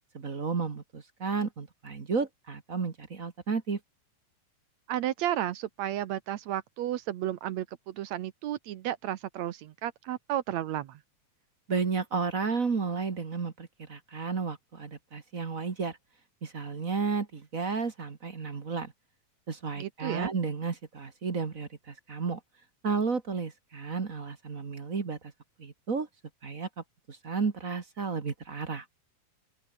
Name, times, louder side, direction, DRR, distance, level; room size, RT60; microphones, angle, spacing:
voice 1, 0.1-3.8 11.7-16.0 16.4-18.9 19.5-22.4 22.8-25.2 25.6-26.1 26.4-26.7 27.1-28.8, right 5 dB, 35° right, 1.5 m, -32 dB
voice 2, 4.9-11.0 19.8-20.3, right 12 dB, 70° right, 2.0 m, -33 dB
open air
omnidirectional pair, 3.6 m